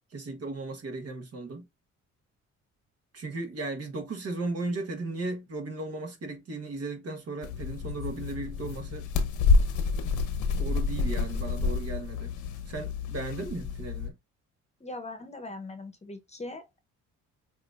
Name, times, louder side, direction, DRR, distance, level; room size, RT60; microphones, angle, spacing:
voice 1, 0.1-1.7 3.1-9.1 10.6-12.3 12.7-14.1, right 3 dB, 55° right, 1.4 m, -36 dB
sound 1, 7.4-14.1, left 4 dB, 85° left, 1.0 m, -28 dB
voice 2, 14.8-16.8, left 2 dB, 20° left, 0.9 m, -40 dB
5.9 x 2.7 x 2.5 m
cardioid pair, 90°, 30 cm